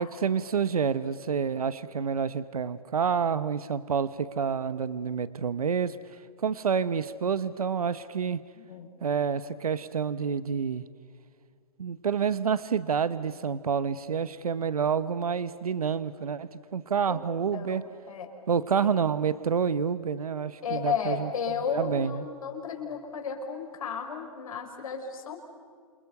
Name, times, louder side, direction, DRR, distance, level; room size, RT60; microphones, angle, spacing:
voice 1, 0.0-6.0 6.4-8.4 9.0-10.8 11.8-17.8 18.5-21.3 21.7-22.3, right 6 dB, 85° right, 14 dB, 1.1 m, -28 dB
voice 2, 8.5-8.9 17.0-17.3 17.5-18.3 18.8-18.9 20.6-25.4, left 6 dB, 70° left, 3 dB, 5.7 m, -33 dB
29.0 x 28.0 x 6.8 m, 2.1 s
hypercardioid pair, 135°, 19 cm